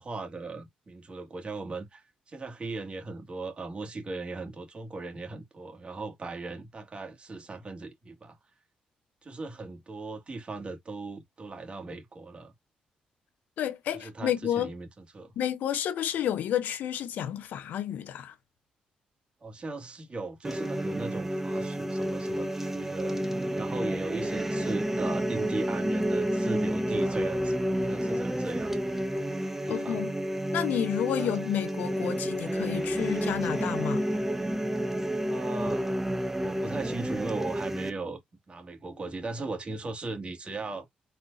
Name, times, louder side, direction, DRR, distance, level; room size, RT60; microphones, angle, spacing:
voice 1, 0.0-8.4 9.2-12.5 13.9-14.9 15.1-15.3 19.4-23.2 23.5-28.9 29.7-30.0 31.2-31.3 35.0-35.8 36.4-38.2 38.5-40.9, right 3 dB, 40° right, 2.1 m, -38 dB
voice 2, 13.6-14.7 15.4-18.3 29.7-30.1 30.5-34.1, left 10 dB, 80° left, 0.7 m, -30 dB
sound 1, 20.4-37.9, right 1 dB, 10° right, 1.2 m, -30 dB
4.5 x 3.9 x 2.6 m
cardioid pair, 70°, 3 cm